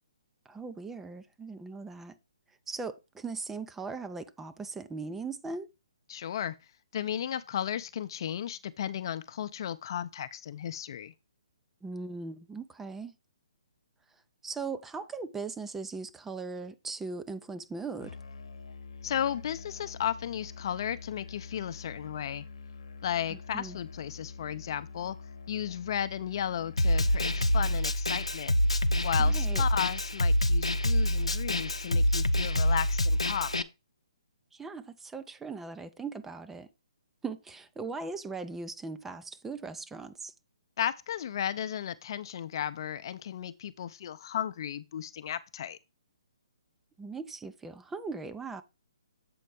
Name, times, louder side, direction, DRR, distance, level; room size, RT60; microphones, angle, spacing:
voice 1, 0.5-2.1 2.7-5.7 11.8-13.1 14.4-18.2 23.3-23.8 29.2-29.6 34.5-36.7 37.2-40.3 47.0-48.6, right 4 dB, 10° right, 0.5 m, -39 dB
voice 2, 6.1-6.6 6.9-11.1 19.0-22.5 23.0-25.2 25.5-28.5 29.0-33.6 40.8-45.8, left 9 dB, 50° left, 0.6 m, -34 dB
Musical instrument, 18.0-27.9, left 4 dB, 65° left, 1.0 m, -46 dB
Snare drum, 26.8-33.6, left 1 dB, 90° left, 0.6 m, -26 dB
7.8 x 4.2 x 4.6 m
figure-of-eight pair, 135°, 3 cm